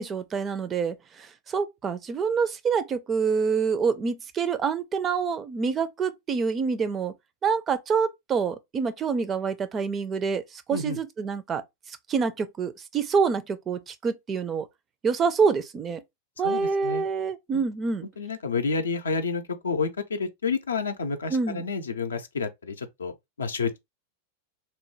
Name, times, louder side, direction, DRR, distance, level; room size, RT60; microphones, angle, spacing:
voice 1, 0.0-7.1 7.4-10.4 10.7-11.6 12.1-14.7 15.0-16.0 16.4-18.1 21.3-21.6, right 5 dB, 25° right, 0.4 m, -26 dB
voice 2, 16.4-17.0 17.5-17.6 18.2-23.1 23.4-23.8, left 4 dB, 70° left, 0.5 m, -29 dB
3.0 x 2.1 x 3.0 m
figure-of-eight pair, 90°, 0 cm